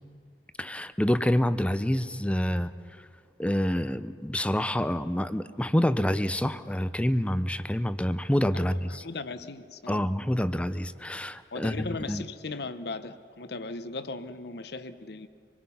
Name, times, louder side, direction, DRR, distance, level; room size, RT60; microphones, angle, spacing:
voice 1, 0.6-2.7 3.4-9.0 9.9-12.2, equal, 5° left, 13 dB, 0.5 m, -27 dB
voice 2, 8.5-10.0 11.5-15.3, left 3 dB, 65° left, 12 dB, 0.9 m, -38 dB
26.5 x 20.5 x 5.7 m, 2.1 s
head